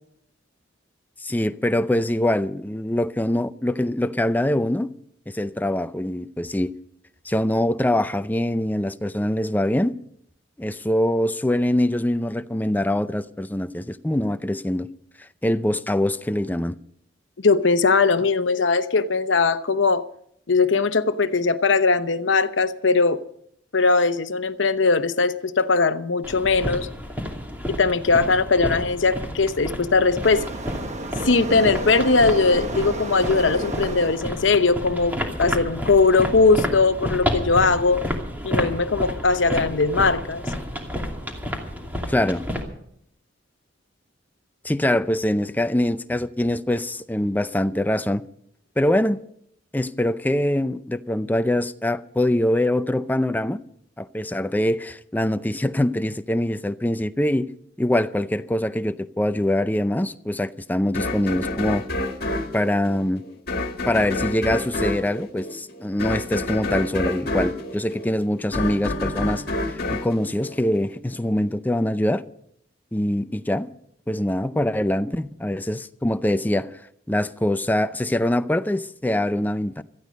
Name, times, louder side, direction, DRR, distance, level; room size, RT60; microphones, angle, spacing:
voice 1, 1.2-4.9 5.3-6.7 7.3-9.9 10.6-14.9 15.2-16.7 42.1-42.4 44.6-48.2 48.8-49.2 49.7-53.6 54.0-57.5 57.8-61.9 62.5-63.3 63.9-72.2 72.9-73.7 74.1-76.7 77.1-79.8, left 1 dB, 10° left, 0.5 m, -23 dB
voice 2, 17.4-20.1 20.5-23.2 23.7-26.9 27.7-30.5 31.2-38.0 38.4-40.4, left 4 dB, 70° left, 0.9 m, -20 dB
sound 1, 26.2-42.6, equal, 10° right, 2.5 m, -30 dB
Waves surf, 30.2-34.2, right 2 dB, 40° right, 1.1 m, -32 dB
sound 2, 60.9-71.2, left 2 dB, 55° left, 1.9 m, -28 dB
17.5 x 14.0 x 5.2 m
head